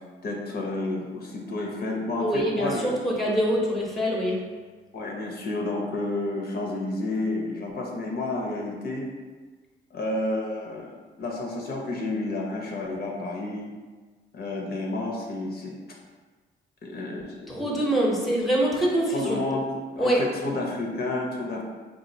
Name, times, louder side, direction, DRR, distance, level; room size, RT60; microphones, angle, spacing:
voice 1, 0.0-2.9 4.9-9.1 9.9-13.7 14.3-15.8 16.8-17.8 19.1-19.7 20.0-21.6, left 2 dB, 55° left, -1 dB, 0.6 m, -30 dB
voice 2, 2.2-4.4 17.5-19.4 20.0-20.2, equal, ahead, -3 dB, 0.7 m, -24 dB
4.0 x 2.4 x 2.7 m, 1.4 s
cardioid pair, 90°, 20 cm